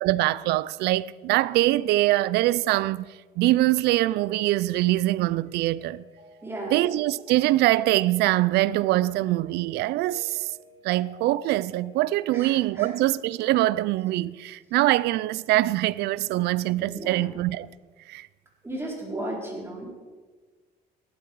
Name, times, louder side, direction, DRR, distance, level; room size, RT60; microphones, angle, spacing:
voice 1, 0.0-3.0 3.4-6.0 6.7-10.5 10.8-17.7 18.1-18.3, right 16 dB, 80° right, 0.4 m, -23 dB
Mallet percussion, 5.4-13.6, right 2 dB, 50° right, 5.6 m, -52 dB
voice 2, 6.4-6.8 12.3-12.9 16.8-17.4 18.6-19.9, right 1 dB, 15° right, 4.2 m, -35 dB
16.5 x 12.0 x 4.7 m
cardioid pair, 110°, 17 cm